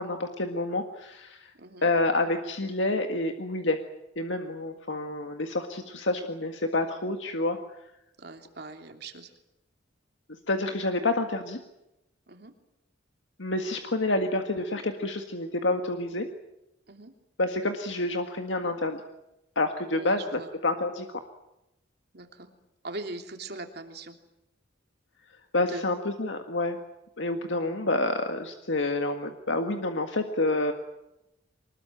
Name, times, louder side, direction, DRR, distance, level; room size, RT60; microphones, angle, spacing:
voice 1, 0.0-1.5 1.8-3.8 4.1-7.6 10.5-11.6 13.4-16.3 17.4-19.0 19.5-21.2 25.5-26.8 27.2-30.7, left 2 dB, 75° left, 5 dB, 1.8 m, -28 dB
voice 2, 1.6-1.9 5.8-6.0 8.2-9.3 12.3-12.5 16.9-17.1 20.0-20.5 22.1-22.5 22.8-24.2 25.6-25.9, right 2 dB, 55° right, 5 dB, 3.1 m, -41 dB
24.5 x 21.0 x 9.1 m, 0.90 s
head